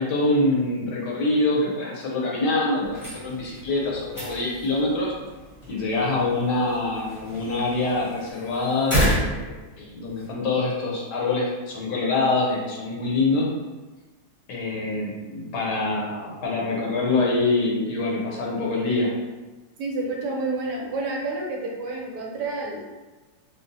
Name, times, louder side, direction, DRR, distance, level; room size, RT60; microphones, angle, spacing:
voice 1, 0.0-5.1 5.7-9.5 9.8-13.5 14.5-19.1, left 2 dB, 75° left, -3 dB, 1.3 m, -25 dB
sound 1, 2.8-10.3, equal, 25° left, 0.7 m, -31 dB
voice 2, 19.8-22.8, right 3 dB, 75° right, -1 dB, 1.1 m, -29 dB
3.7 x 2.0 x 2.6 m, 1.2 s
omnidirectional pair, 1.9 m